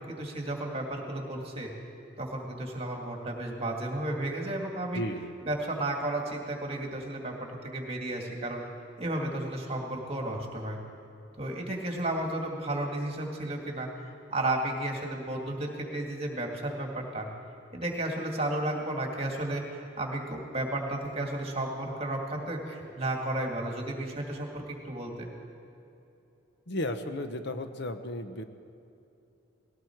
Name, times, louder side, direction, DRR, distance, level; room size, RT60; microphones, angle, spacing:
voice 1, 0.1-1.7 2.2-5.0 5.4-7.4 7.6-8.6 9.0-10.8 11.4-13.9 14.3-17.3 17.7-25.3, right 1 dB, 30° right, 1 dB, 2.2 m, -33 dB
voice 2, 4.9-5.3 26.7-28.4, left 1 dB, 60° left, 8 dB, 0.9 m, -34 dB
19.0 x 16.5 x 4.6 m, 2.8 s
head